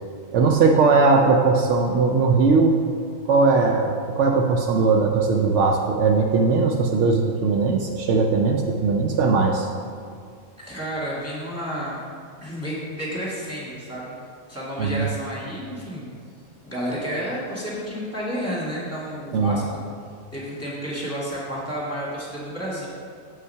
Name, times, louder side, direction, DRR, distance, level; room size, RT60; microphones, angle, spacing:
voice 1, 0.3-2.8 3.3-9.7 14.8-15.1 19.3-19.6, right 4 dB, 70° right, 2 dB, 0.9 m, -19 dB
voice 2, 10.6-12.0 12.4-14.1 14.5-16.1 16.6-19.8 20.3-22.9, equal, 10° left, -6 dB, 2.1 m, -31 dB
7.7 x 5.5 x 5.6 m, 2.2 s
omnidirectional pair, 1.4 m